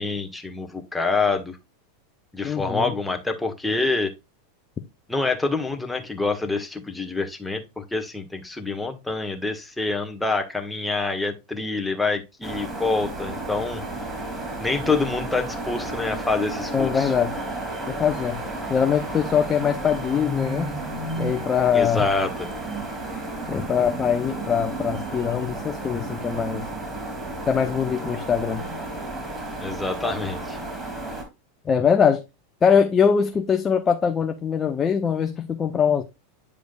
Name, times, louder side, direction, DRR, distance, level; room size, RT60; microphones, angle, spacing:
voice 1, 0.0-1.6 2.3-4.1 5.1-13.8 14.6-17.1 21.7-22.5 29.6-30.6, left 3 dB, 5° left, 1.5 m, -26 dB
voice 2, 2.4-2.9 16.7-17.3 17.9-20.7 21.2-22.0 23.5-26.7 27.5-28.7 31.6-32.2 32.6-36.0, left 7 dB, 25° left, 0.7 m, -22 dB
sound 1, 12.4-31.2, right 2 dB, 15° right, 3.7 m, -32 dB
9.6 x 5.0 x 2.4 m
hypercardioid pair, 95°, 0 cm